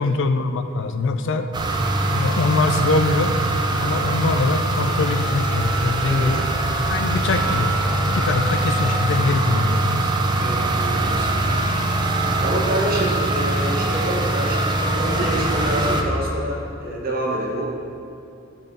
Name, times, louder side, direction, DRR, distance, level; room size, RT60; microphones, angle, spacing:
voice 1, 0.0-1.5 2.1-3.3 3.8-6.5 6.9-7.7 8.1-10.1, left 3 dB, 60° left, 8 dB, 0.4 m, -23 dB
sound 1, 1.5-16.0, right 2 dB, 20° right, 0.4 m, -22 dB
voice 2, 6.1-6.4 10.4-11.4 12.4-17.7, right 1 dB, 45° right, -2 dB, 1.0 m, -27 dB
8.8 x 4.0 x 3.8 m, 2.5 s
head